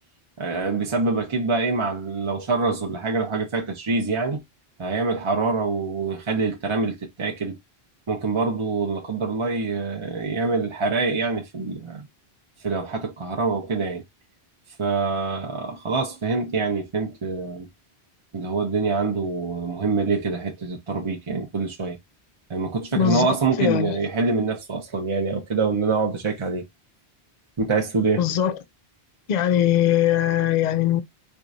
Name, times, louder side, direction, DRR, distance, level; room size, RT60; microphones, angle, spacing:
voice 1, 0.4-4.4 4.8-7.6 8.1-12.0 12.6-14.0 14.8-17.7 18.3-22.0 22.5-26.7 27.6-28.2, right 4 dB, 35° right, 0.5 m, -25 dB
voice 2, 22.9-23.3 23.6-24.0 28.2-28.6 29.3-31.0, left 10 dB, 55° left, 0.5 m, -21 dB
4.3 x 2.4 x 2.5 m
omnidirectional pair, 1.1 m